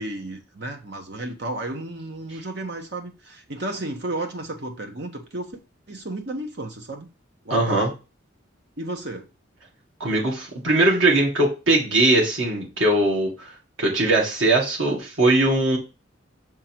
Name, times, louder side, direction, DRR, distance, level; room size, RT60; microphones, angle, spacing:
voice 1, 0.0-5.5 5.9-7.1 7.4-7.9 8.8-9.3, right 2 dB, 60° right, 1.2 m, -33 dB
voice 2, 7.5-7.9 10.0-13.5 13.8-15.8, right 2 dB, 85° right, 1.9 m, -20 dB
6.3 x 3.8 x 4.5 m
head